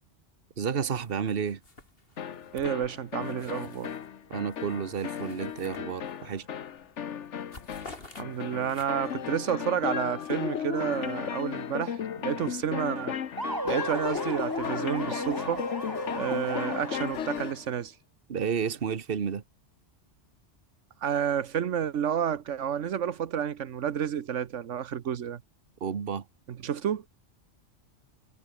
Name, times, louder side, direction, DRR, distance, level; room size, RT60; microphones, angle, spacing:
voice 1, 0.6-1.6 4.3-6.5 18.3-19.4 25.8-26.2, right 7 dB, 55° right, 1.4 m, -31 dB
sound 1, 1.0-1.3 1.6-4.1 4.5-6.4 6.7-7.0 7.2-9.2, left 2 dB, 50° left, 4.0 m, -50 dB
sound 2, 2.2-17.6, left 8 dB, 75° left, 1.3 m, -35 dB
voice 2, 2.5-3.9 8.2-13.2 13.6-15.6 16.1-18.0 21.0-25.4 26.5-27.0, right 9 dB, 85° right, 1.3 m, -30 dB
sound 3, 13.4-17.3, right 2 dB, 15° right, 1.9 m, -36 dB
omnidirectional pair, 1.2 m